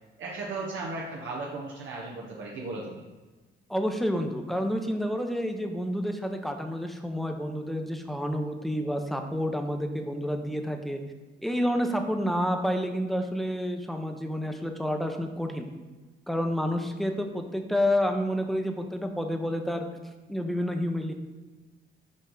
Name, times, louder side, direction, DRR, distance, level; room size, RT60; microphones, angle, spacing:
voice 1, 0.2-3.0, right 3 dB, 80° right, -3 dB, 1.0 m, -36 dB
voice 2, 3.7-11.0 11.4-15.7 16.3-19.9 20.3-21.1, equal, ahead, 5 dB, 0.7 m, -29 dB
5.4 x 4.9 x 3.8 m, 1.2 s
cardioid pair, 90°, 20 cm